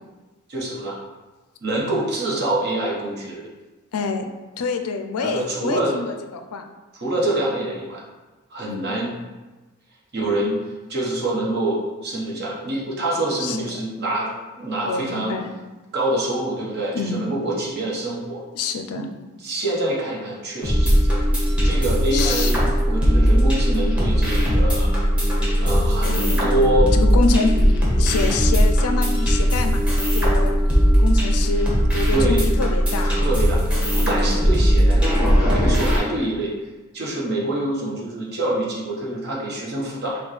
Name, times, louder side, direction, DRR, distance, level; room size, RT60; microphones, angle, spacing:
voice 1, 0.5-1.0 1.6-3.5 5.2-6.0 6.9-8.0 8.5-9.2 10.1-10.6 10.9-15.3 15.9-18.4 18.9-19.1 19.4-21.2 21.6-24.9 25.6-26.9 32.1-32.4 33.0-36.5 36.9-40.2, right 1 dB, 50° right, -4 dB, 1.1 m, -26 dB
voice 2, 3.9-4.3 4.6-6.7 8.7-9.0 13.4-13.7 14.9-15.5 16.9-17.3 18.5-19.1 22.1-22.7 26.0-26.5 26.9-27.6 28.0-30.6 31.0-33.1 34.0-34.2, left 4 dB, 85° left, 6 dB, 0.4 m, -26 dB
sound 1, 20.6-36.0, equal, 5° right, 1.1 m, -18 dB
6.2 x 2.2 x 3.2 m, 1.2 s
head